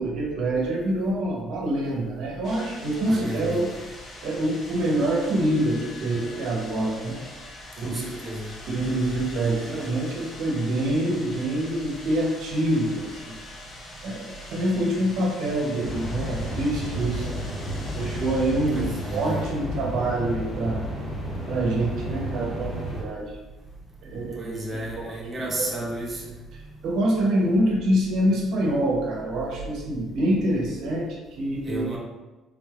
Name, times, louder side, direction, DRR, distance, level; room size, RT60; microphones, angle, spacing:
voice 1, 0.0-3.7 4.2-7.2 7.8-8.0 8.7-13.3 14.0-17.3 17.9-20.8 21.5-23.4 24.0-25.9 26.8-31.9, right 1 dB, 70° right, -2 dB, 0.8 m, -26 dB
sound 1, 2.4-20.0, left 1 dB, 60° left, 0.9 m, -43 dB
voice 2, 3.0-3.6 7.8-8.5 18.7-19.4 24.4-26.2 31.6-32.0, right 1 dB, 20° right, -4 dB, 0.7 m, -33 dB
sound 2, 15.8-23.0, equal, 20° left, 1.0 m, -32 dB
3.5 x 3.3 x 2.4 m, 1.1 s
cardioid pair, 130°, 0 cm